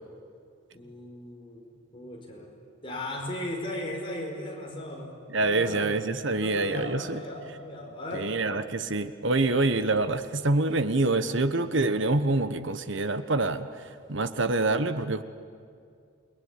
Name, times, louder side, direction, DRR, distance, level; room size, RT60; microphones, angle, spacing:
voice 1, 0.7-2.5 2.8-6.0 6.3-8.3, left 1 dB, 25° left, -1 dB, 5.1 m, -37 dB
voice 2, 5.3-7.2 8.1-13.7 14.1-15.2, right 2 dB, 60° right, 11 dB, 1.2 m, -26 dB
29.0 x 20.0 x 9.9 m, 2.3 s
head